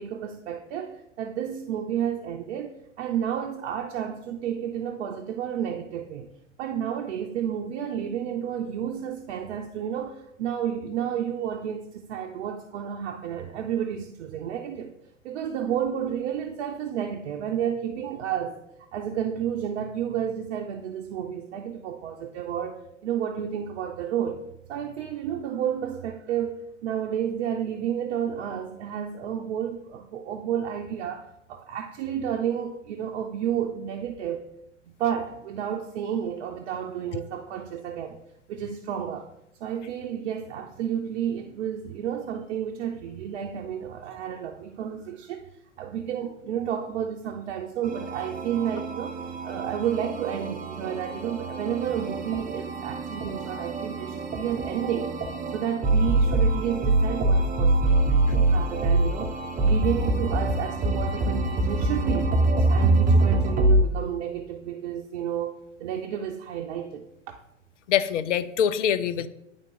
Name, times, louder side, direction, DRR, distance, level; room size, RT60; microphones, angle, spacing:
voice 1, 0.0-6.3 6.6-14.9 15.2-18.6 18.9-24.4 24.7-34.5 34.9-38.2 38.5-39.3 39.6-45.5 45.8-55.1 55.5-59.3 59.6-62.4 62.7-67.3, right 9 dB, 60° right, 0.7 m, -31 dB
sound 1, 47.8-63.8, right 2 dB, 20° right, 0.9 m, -24 dB
voice 2, 67.9-69.3, left 9 dB, 70° left, 0.6 m, -24 dB
10.5 x 3.5 x 3.9 m
figure-of-eight pair, 95°, 37 cm